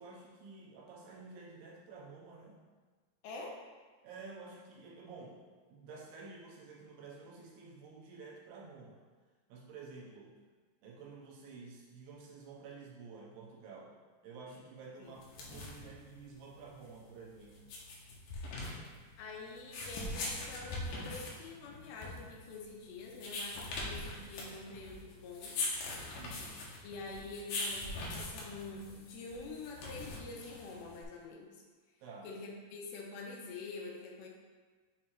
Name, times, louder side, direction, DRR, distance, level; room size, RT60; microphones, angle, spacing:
voice 1, 0.0-2.6 4.0-5.4 5.7-9.0 9.5-10.3 10.8-13.9 14.2-17.7 26.1-26.5 32.0-32.3, right 4 dB, 75° right, -3 dB, 2.8 m, -51 dB
voice 2, 3.2-3.6 15.0-15.1 19.2-25.6 26.8-31.6 32.2-34.3, left 3 dB, 90° left, -1 dB, 3.0 m, -46 dB
sound 1, 15.2-31.0, left 2 dB, 70° left, 2.2 m, -42 dB
7.2 x 3.1 x 4.4 m, 1.4 s
omnidirectional pair, 4.9 m